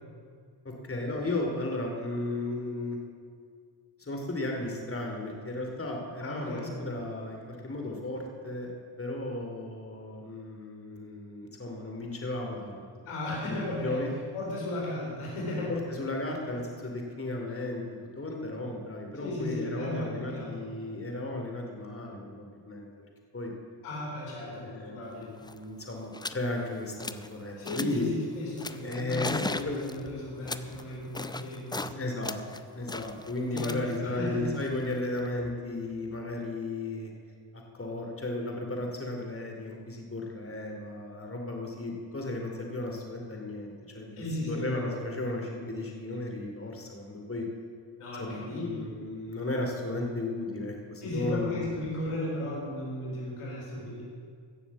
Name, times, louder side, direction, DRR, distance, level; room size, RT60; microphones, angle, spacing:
voice 1, 0.6-3.0 4.0-12.9 13.5-14.1 15.7-17.8 18.2-23.1 23.3-23.5 24.5-28.1 28.8-30.3 31.9-32.3 32.7-37.1 37.5-47.5 48.2-51.7, left 2 dB, 25° left, 1 dB, 2.7 m, -35 dB
voice 2, 6.2-6.8 13.1-14.0 14.3-15.7 19.2-20.6 23.8-25.3 27.6-32.1 33.5-34.5 44.2-44.8 48.0-48.7 51.0-54.0, left 1 dB, 90° left, -4 dB, 4.2 m, -35 dB
pas mouillé gravier, 25.1-25.2 25.4-25.6 26.1-26.4 26.8-27.3 27.6-28.1 28.6-31.9 32.2-35.3, left 2 dB, 10° left, 0.5 m, -38 dB
15.5 x 7.1 x 7.3 m, 2.1 s
supercardioid pair, 55°, 50 cm